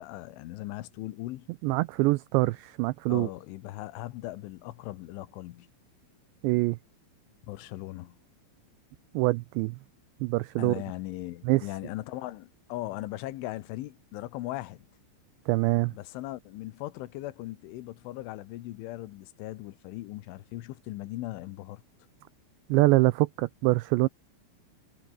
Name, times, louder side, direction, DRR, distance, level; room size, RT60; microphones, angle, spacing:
voice 1, 0.0-1.5 3.1-5.7 7.4-8.2 10.6-14.8 15.9-21.8, left 16 dB, 80° left, 3.5 m, -39 dB
voice 2, 1.6-3.3 6.4-6.8 9.1-9.8 10.2-10.8 11.5-11.7 15.5-15.9 22.7-24.1, right 22 dB, 85° right, 2.5 m, -24 dB
omnidirectional pair, 5.7 m